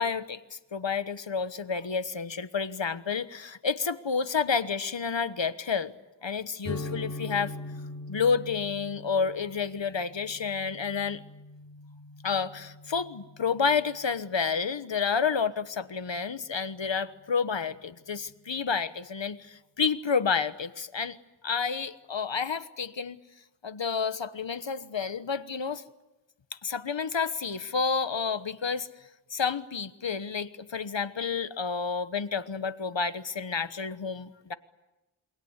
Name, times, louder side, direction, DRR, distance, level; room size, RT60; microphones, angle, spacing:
voice 1, 0.0-5.9 6.2-7.5 8.1-11.2 12.2-21.2 21.4-23.2 23.6-25.8 26.6-28.9 29.3-34.5, left 5 dB, 75° left, 12 dB, 1.2 m, -30 dB
sound 1, 6.6-14.2, left 2 dB, 35° left, 7.5 m, -42 dB
28.0 x 24.0 x 8.2 m, 1.0 s
wide cardioid pair, 60°, 45 cm